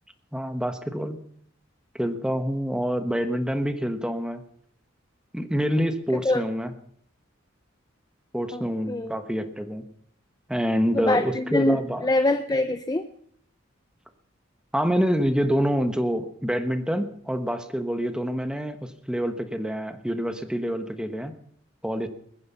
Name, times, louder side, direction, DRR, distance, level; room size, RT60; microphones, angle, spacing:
voice 1, 0.3-1.2 1.9-4.4 5.3-6.7 8.3-9.9 10.5-12.0 14.7-21.3 21.8-22.1, equal, 5° right, 9 dB, 1.1 m, -26 dB
voice 2, 8.5-9.2 10.9-13.1, left 2 dB, 20° left, 8 dB, 0.6 m, -25 dB
21.0 x 9.7 x 5.5 m, 0.65 s
head